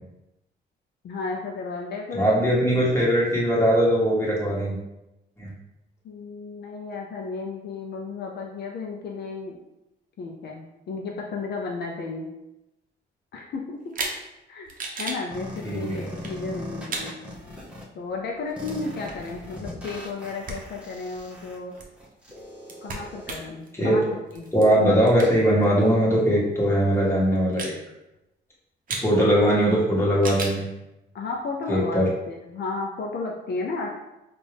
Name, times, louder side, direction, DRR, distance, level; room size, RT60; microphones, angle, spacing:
voice 1, 1.0-2.8 6.0-9.6 10.2-12.3 13.3-14.0 14.5-14.7 15.0-17.1 17.9-21.7 22.8-24.5 24.8-24.9 29.2-29.3 31.1-32.0 32.3-33.9, left 3 dB, 60° left, -1 dB, 0.5 m, -33 dB
voice 2, 2.1-4.8 5.4-5.5 15.6-16.1 23.7-24.0 24.5-27.7 29.0-30.6 31.7-32.1, equal, 15° left, -5 dB, 1.4 m, -20 dB
sound 1, 13.9-14.2 14.7-15.2 16.1-16.3 16.9-17.1 18.4-20.2 20.4-20.6 20.9-25.6 26.0-26.1 26.8-27.0 27.4-27.8 28.9-29.1 30.2-30.6, right 3 dB, 45° right, 0.7 m, -35 dB
sound 2, 15.3-17.8 18.6-23.3, left 1 dB, 5° right, 0.9 m, -40 dB
3.8 x 2.5 x 3.4 m, 0.94 s
cardioid pair, 90°, 20 cm